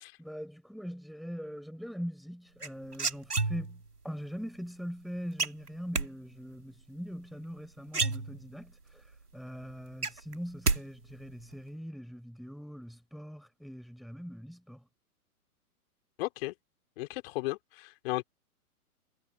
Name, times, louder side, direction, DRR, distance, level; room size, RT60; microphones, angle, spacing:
voice 1, 0.2-14.9, equal, ahead, 7.1 m, -42 dB
sound 1, 2.6-3.9 5.4-6.1 7.5-7.6 7.9-8.7 9.1-9.2 9.5-10.8 11.1-11.5, right 3 dB, 90° right, 2.8 m, -30 dB
voice 2, 16.2-16.5 17.0-18.2, left 20 dB, 40° left, 4.4 m, -35 dB
figure-of-eight pair, 120°, 45 cm